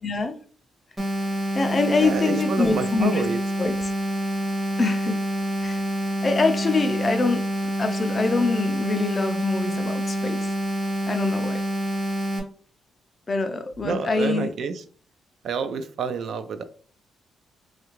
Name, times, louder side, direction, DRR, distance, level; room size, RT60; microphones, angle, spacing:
voice 1, 0.0-0.4 1.5-3.2 3.6-3.7 4.8-5.2 5.6-5.8 6.2-7.5 7.8-10.5 11.1-11.6 13.3-14.5, left 3 dB, 25° left, 0.3 m, -24 dB
sound 1, 1.0-12.4, right 1 dB, 15° right, 0.7 m, -27 dB
voice 2, 2.0-3.4 13.8-14.8 15.4-16.6, right 5 dB, 50° right, 0.3 m, -28 dB
3.2 x 2.4 x 3.0 m
cardioid pair, 160°, 0 cm